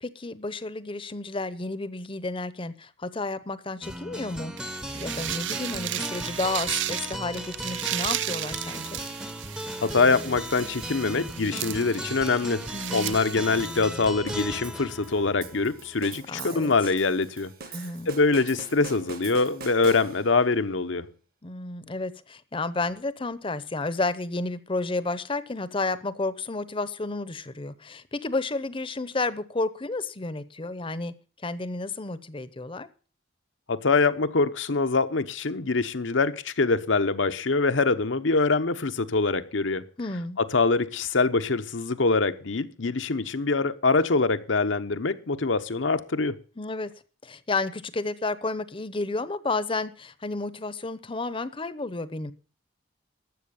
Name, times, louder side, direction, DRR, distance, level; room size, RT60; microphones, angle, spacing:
voice 1, 0.0-9.0 12.7-13.2 16.3-16.7 17.7-18.1 21.4-31.1 31.4-32.9 40.0-40.4 46.6-46.9 47.2-52.3, left 3 dB, 25° left, 0.8 m, -31 dB
sound 1, 3.8-16.1, equal, 5° right, 0.7 m, -37 dB
sound 2, 4.6-14.0, right 13 dB, 70° right, 0.5 m, -34 dB
voice 2, 9.8-12.6 12.9-17.5 18.1-21.1 33.7-39.9 40.4-46.4, left 3 dB, 75° left, 0.9 m, -24 dB
sound 3, 14.3-20.5, right 5 dB, 50° right, 1.2 m, -43 dB
12.5 x 7.7 x 7.0 m
head